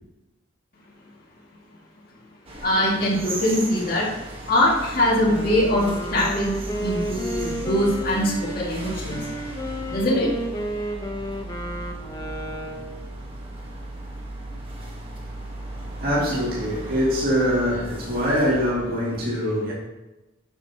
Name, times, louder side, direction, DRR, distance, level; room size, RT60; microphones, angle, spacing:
sound 1, 2.5-18.7, right 1 dB, 30° right, 1.4 m, -36 dB
voice 1, 2.6-4.1 4.5-6.5 6.8-9.2 9.9-10.3, left 1 dB, 45° left, 2.1 m, -22 dB
Wind instrument woodwind instrument, 5.2-13.0, equal, 20° left, 0.9 m, -32 dB
voice 2, 15.9-19.7, equal, 50° right, 2.4 m, -23 dB
11.0 x 7.0 x 2.9 m
head